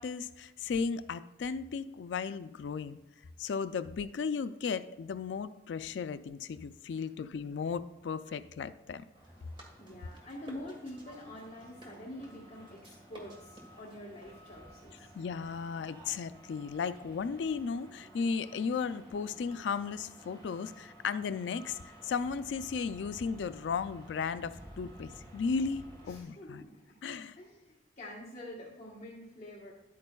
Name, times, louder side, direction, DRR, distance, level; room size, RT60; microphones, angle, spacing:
voice 1, 0.0-3.0 3.4-9.0 15.1-26.7 27.0-27.4, left 5 dB, 85° left, 13 dB, 0.4 m, -35 dB
sound 1, 9.1-26.2, right 1 dB, 30° right, 1.5 m, -53 dB
voice 2, 9.8-15.1 26.0-27.0 27.3-29.7, left 1 dB, 40° left, -7 dB, 1.2 m, -46 dB
10.5 x 8.5 x 2.3 m, 0.97 s
head